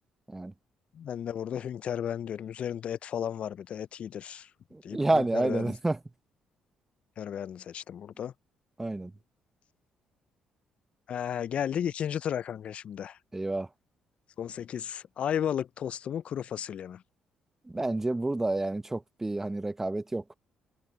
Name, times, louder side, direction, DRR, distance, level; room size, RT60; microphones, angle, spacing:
voice 1, 0.9-4.5 4.8-5.7 7.2-8.3 11.1-13.2 14.4-17.0, left 9 dB, 60° left, 0.4 m, -34 dB
voice 2, 4.7-6.0 8.8-9.1 13.3-13.7 17.7-20.3, right 2 dB, 15° right, 1.1 m, -29 dB
supercardioid pair, 60°, 2 cm